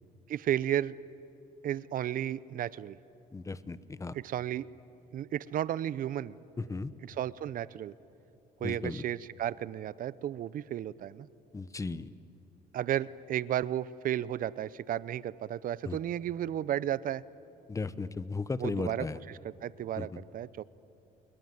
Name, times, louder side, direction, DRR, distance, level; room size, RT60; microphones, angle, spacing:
voice 1, 0.3-0.9 1.6-3.0 4.1-4.7 5.1-6.3 7.1-7.9 8.6-11.3 12.7-17.2 18.6-19.1 19.6-20.6, right 11 dB, 55° right, 19 dB, 0.7 m, -33 dB
voice 2, 3.3-4.2 6.6-6.9 8.6-9.0 11.5-12.1 15.8-16.0 17.7-19.2 20.0-20.2, left 3 dB, 20° left, 15 dB, 0.9 m, -36 dB
28.5 x 21.5 x 9.4 m, 2.8 s
cardioid pair, 110°, 17 cm